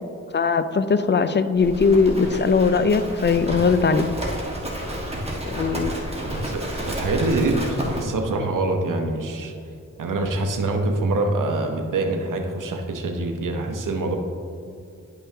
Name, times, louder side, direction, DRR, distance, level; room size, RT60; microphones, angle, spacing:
voice 1, 0.3-4.1 5.5-6.0, left 5 dB, 35° left, 12 dB, 0.5 m, -20 dB
Livestock farm animals working animals, 1.6-8.0, equal, 20° right, 1.6 m, -30 dB
voice 2, 6.4-9.5 10.0-14.2, right 2 dB, 85° right, 3 dB, 0.9 m, -25 dB
10.5 x 5.5 x 2.8 m, 2.5 s
cardioid pair, 55°, 31 cm